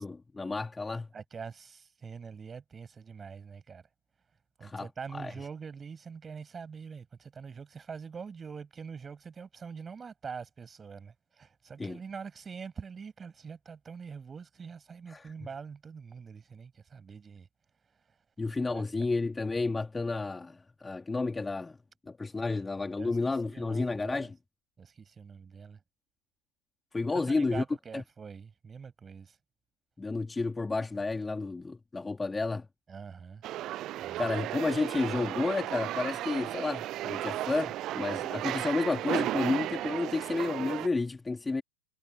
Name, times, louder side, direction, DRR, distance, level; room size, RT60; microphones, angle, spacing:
voice 1, 0.0-1.1 4.6-5.3 11.8-12.0 15.1-15.3 18.4-21.8 22.1-24.3 26.9-27.6 27.9-28.0 30.0-32.7 34.2-41.6, left 3 dB, 10° left, 2.6 m, -31 dB
voice 2, 1.1-3.8 4.6-17.5 18.4-18.8 22.4-22.6 23.0-23.2 23.4-24.3 24.8-25.8 27.1-29.4 32.9-33.4 34.0-34.3, right 6 dB, 15° right, 7.0 m, -44 dB
sound 1, 33.4-40.9, right 14 dB, 35° right, 7.2 m, -34 dB
figure-of-eight pair, 90°, 0 cm